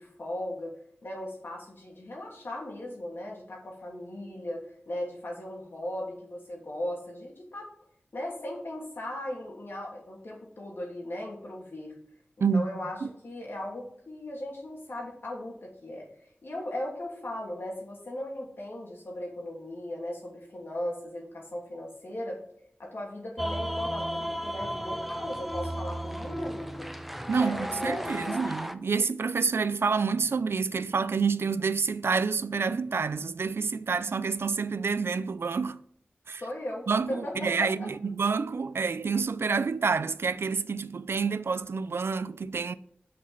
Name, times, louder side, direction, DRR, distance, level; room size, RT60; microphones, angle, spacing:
voice 1, 0.0-7.7 8.1-11.9 12.5-13.0 13.2-16.1 16.4-22.4 22.8-26.9 27.4-28.5 36.3-37.9, left 1 dB, 70° left, 2.9 m, -37 dB
sound 1, 23.4-28.7, equal, 5° right, 0.6 m, -34 dB
voice 2, 27.3-35.8 36.3-36.4 36.9-42.7, right 5 dB, 80° right, 0.4 m, -28 dB
6.2 x 5.8 x 7.1 m
wide cardioid pair, 65°, 4 cm